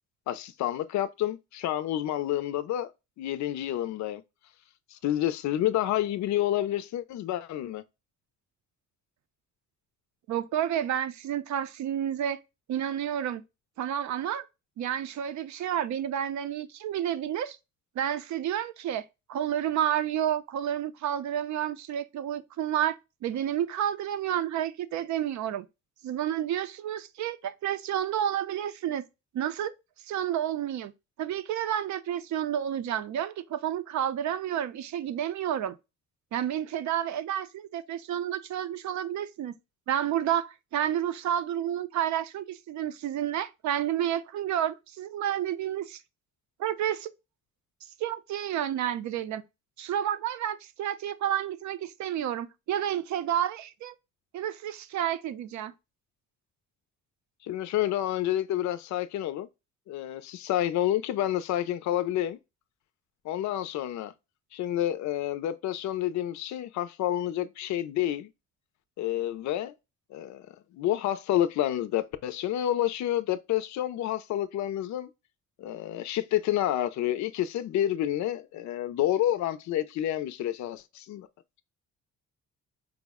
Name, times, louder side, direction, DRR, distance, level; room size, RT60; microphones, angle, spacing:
voice 1, 0.3-2.9 3.2-4.2 4.9-7.8 57.4-59.5 59.9-62.4 63.2-64.1 64.5-68.3 69.0-69.7 70.1-75.1 75.6-81.3, left 12 dB, 70° left, 0.5 m, -29 dB
voice 2, 10.3-12.4 12.7-13.4 13.8-14.4 14.8-17.6 18.0-23.0 23.2-25.7 26.0-29.0 29.3-29.7 30.1-30.9 31.2-35.8 36.3-39.6 39.9-46.0 46.6-47.1 48.0-49.4 49.8-53.9 54.3-55.7, right 10 dB, 70° right, 0.5 m, -30 dB
4.8 x 2.1 x 3.4 m
cardioid pair, 135°, 30 cm